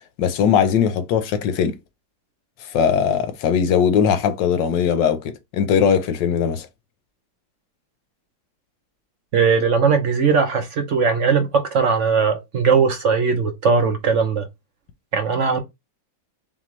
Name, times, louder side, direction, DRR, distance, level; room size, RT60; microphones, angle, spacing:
voice 1, 0.2-1.7 2.6-6.7, left 7 dB, 85° left, 1.4 m, -19 dB
voice 2, 9.3-14.5 15.1-15.6, right 5 dB, 55° right, 0.9 m, -19 dB
4.3 x 3.8 x 3.1 m
omnidirectional pair, 1.9 m